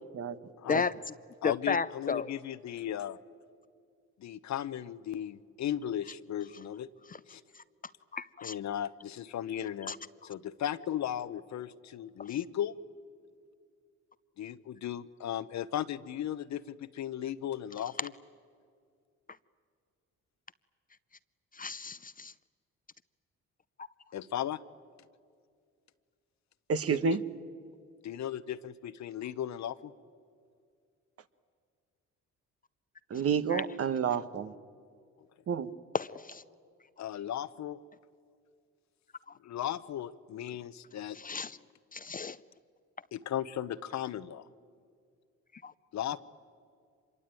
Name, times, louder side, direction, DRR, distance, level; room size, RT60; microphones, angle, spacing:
voice 1, 0.7-1.1 1.4-2.3 7.1-7.2 8.1-8.6 9.9-10.0 21.5-22.3 33.5-33.6 35.9-36.4 41.1-41.6 41.9-42.4 45.6-45.7, left 5 dB, 30° left, 16 dB, 0.6 m, -33 dB
voice 2, 1.4-3.2 4.2-6.9 7.3-7.4 8.4-9.9 10.2-12.8 14.4-18.1 24.1-24.6 26.9-27.2 28.0-29.9 37.0-37.8 39.4-41.2 43.1-44.5 45.9-46.2, left 11 dB, 65° left, 15 dB, 0.9 m, -36 dB
voice 3, 26.7-27.2 33.1-34.5 35.5-35.7, right 7 dB, 50° right, 13 dB, 1.2 m, -29 dB
26.0 x 22.5 x 9.1 m, 2.2 s
cardioid pair, 90°, 30 cm